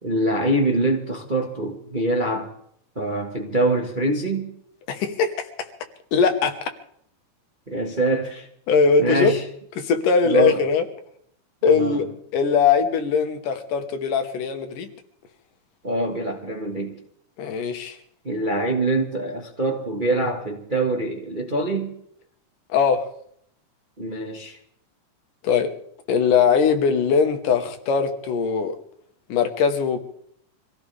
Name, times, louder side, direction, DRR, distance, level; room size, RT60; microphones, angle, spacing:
voice 1, 0.0-2.5 2.9-4.5 7.7-8.5 9.0-9.4 10.2-10.6 11.7-12.0 15.8-16.9 18.2-21.9 24.0-24.6, right 2 dB, 25° right, 1.0 m, -24 dB
voice 2, 4.9-5.5 6.1-6.6 8.7-9.3 9.8-10.8 11.6-12.1 12.3-14.9 17.4-18.0 22.7-23.1 25.4-25.7 26.1-28.8 29.3-30.0, left 6 dB, 90° left, 2.9 m, -20 dB
25.5 x 16.5 x 3.4 m
omnidirectional pair, 3.7 m